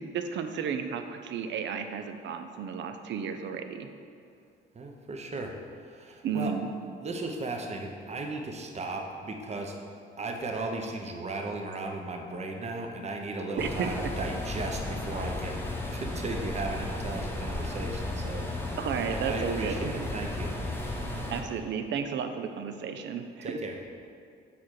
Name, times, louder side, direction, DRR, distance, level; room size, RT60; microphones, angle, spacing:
voice 1, 0.1-3.9 6.2-6.7 13.6-14.1 18.8-20.1 21.3-23.5, right 7 dB, 70° right, 7 dB, 0.6 m, -33 dB
voice 2, 4.7-5.6 5.8-6.5 7.0-9.8 10.2-15.6 15.9-18.5 19.1-20.6 23.4-23.8, right 2 dB, 35° right, 2 dB, 0.8 m, -36 dB
sound 1, 13.6-21.4, left 2 dB, 10° left, 0.9 m, -34 dB
7.1 x 4.3 x 4.8 m, 2.3 s
cardioid pair, 90°, 20 cm